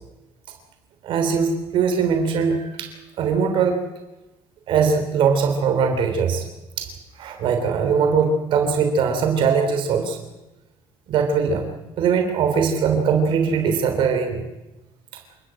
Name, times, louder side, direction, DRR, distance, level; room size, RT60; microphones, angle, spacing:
voice 1, 1.0-2.9 3.2-3.8 4.7-6.5 6.8-10.2 11.1-14.4, right 6 dB, 70° right, 6 dB, 3.6 m, -21 dB
28.0 x 13.0 x 9.0 m, 1.0 s
cardioid pair, 115°, 9 cm